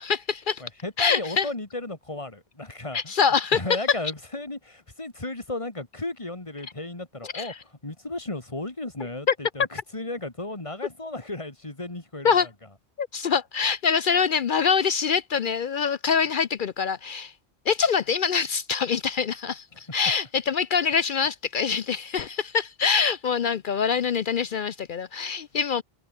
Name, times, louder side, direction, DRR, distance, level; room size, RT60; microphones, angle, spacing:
voice 1, 0.0-0.6 1.0-1.5 2.9-3.6 7.2-7.6 9.3-9.4 12.2-12.5 13.0-17.3 17.7-25.8, left 6 dB, 55° left, 0.7 m, -24 dB
voice 2, 0.6-3.1 3.5-7.5 7.8-12.4, left 2 dB, 30° left, 2.6 m, -34 dB
omnidirectional pair, 1.1 m